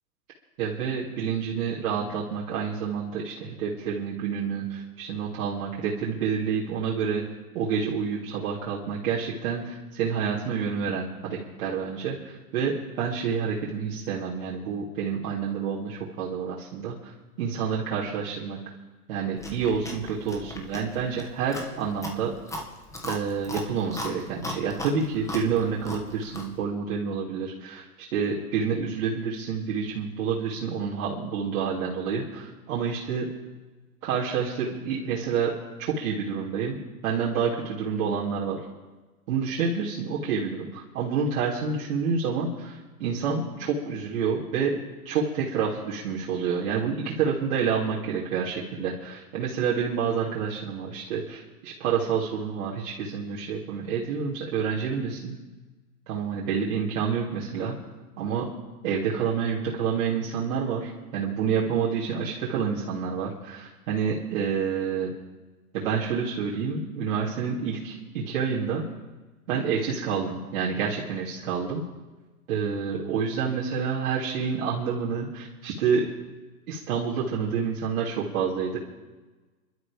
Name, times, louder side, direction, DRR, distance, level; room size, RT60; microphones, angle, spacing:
voice 1, 0.6-7.2 7.5-18.6 19.1-22.3 23.0-33.3 34.0-35.5 35.8-38.6 39.3-55.4 56.1-57.7 58.2-58.5 58.8-65.1 65.7-68.8 69.5-71.8 72.5-76.1 76.7-78.8, right 6 dB, 65° right, -6 dB, 3.0 m, -28 dB
Chewing mastication, 19.4-26.6, left 1 dB, 5° left, 1.9 m, -38 dB
27.0 x 12.5 x 3.6 m, 1.2 s
hypercardioid pair, 125°, 44 cm